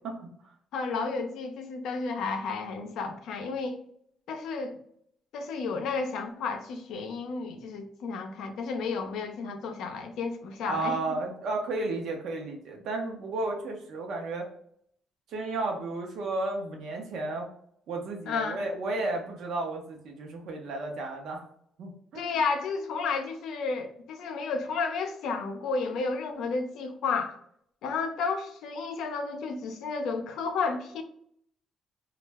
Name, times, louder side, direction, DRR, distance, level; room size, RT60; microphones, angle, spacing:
voice 1, 0.7-3.8 4.3-4.8 5.3-11.0 18.3-18.6 22.1-27.4 27.8-31.0, left 4 dB, 80° left, 0.4 m, -32 dB
voice 2, 10.6-14.5 15.3-17.5 17.9-21.5 21.8-22.4, right 2 dB, 80° right, 0.7 m, -33 dB
2.3 x 2.1 x 3.3 m
cardioid pair, 90°, 0 cm